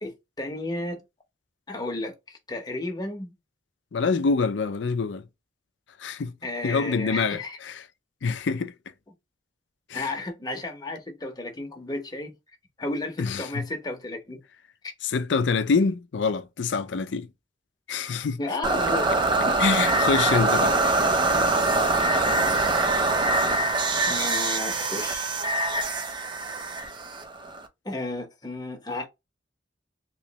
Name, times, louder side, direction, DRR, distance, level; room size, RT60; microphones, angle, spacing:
voice 1, 0.0-1.0 1.7-3.3 6.4-7.6 9.9-12.3 12.8-14.4 14.8-14.9 18.3-19.6 24.1-25.4 27.8-29.1, left 2 dB, 20° left, 0.8 m, -33 dB
voice 2, 3.9-5.2 6.0-6.3 6.6-7.4 7.7-7.8 8.2-8.7 9.9-10.1 13.2-13.6 15.0-17.3 17.9-18.4 19.6-20.7 21.7-21.9, left 4 dB, 75° left, 0.5 m, -25 dB
sound 1, 18.6-27.7, right 2 dB, 25° right, 0.5 m, -24 dB
3.1 x 3.0 x 2.8 m
head